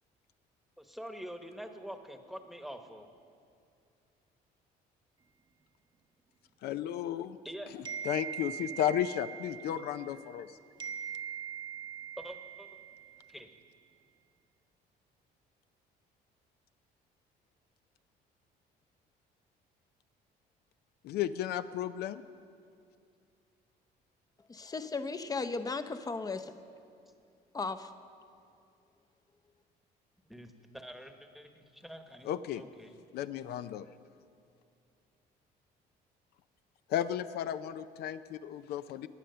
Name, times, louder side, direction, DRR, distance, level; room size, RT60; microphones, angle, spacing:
voice 1, 0.8-3.1 7.4-7.9 12.2-12.7 13.3-13.5 30.2-32.9, equal, ahead, 6 dB, 1.1 m, -46 dB
voice 2, 6.6-7.4 7.7-10.6 21.0-22.2 32.3-32.6 33.1-33.9 36.9-39.1, left 10 dB, 70° left, 12 dB, 0.5 m, -34 dB
sound 1, 7.8-10.5 10.8-13.4, right 8 dB, 25° right, 0.7 m, -42 dB
voice 3, 24.5-26.5 27.5-27.9, left 4 dB, 20° left, 11 dB, 0.7 m, -36 dB
17.0 x 9.9 x 6.7 m, 2.4 s
cardioid pair, 110°, 17 cm